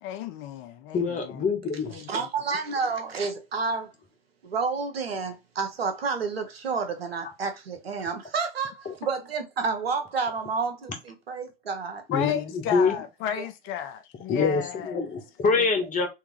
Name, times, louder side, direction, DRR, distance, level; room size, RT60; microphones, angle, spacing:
voice 1, 0.0-1.4 1.9-2.3 12.1-15.0, left 9 dB, 45° left, 0.8 m, -33 dB
voice 2, 0.9-1.9 8.9-9.0 12.1-12.9 14.3-16.1, left 4 dB, 25° left, 1.6 m, -25 dB
voice 3, 2.1-3.9 4.4-12.0 13.3-13.4 14.9-15.1, right 4 dB, 85° right, 1.1 m, -30 dB
3.6 x 3.4 x 3.2 m
hypercardioid pair, 90°, 30 cm